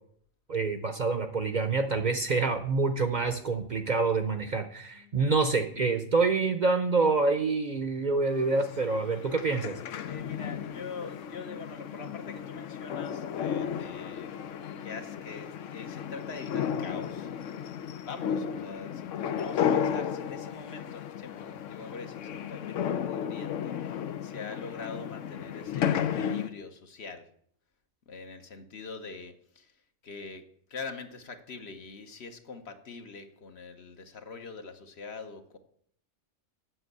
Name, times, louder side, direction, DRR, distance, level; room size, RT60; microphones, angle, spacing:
voice 1, 0.5-9.7, right 4 dB, 45° right, 8 dB, 0.7 m, -27 dB
voice 2, 4.9-5.8 8.3-9.4 10.0-14.4 14.8-17.3 18.0-27.3 28.1-29.7 30.0-35.6, left 4 dB, 60° left, 7 dB, 1.2 m, -44 dB
sound 1, 8.3-26.5, left 8 dB, 85° left, 1.0 m, -34 dB
7.9 x 6.2 x 7.8 m, 0.64 s
omnidirectional pair, 1.3 m